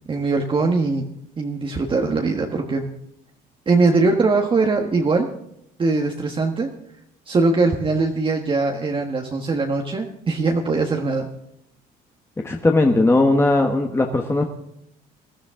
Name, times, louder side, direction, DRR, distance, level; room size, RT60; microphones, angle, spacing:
voice 1, 0.1-1.0 1.4-2.9 3.7-5.3 5.8-6.7 7.3-11.3, right 3 dB, 30° right, 2 dB, 1.4 m, -21 dB
voice 2, 12.4-14.4, left 2 dB, 15° left, 3 dB, 1.3 m, -18 dB
20.5 x 13.0 x 3.7 m, 0.76 s
cardioid pair, 110°, 17 cm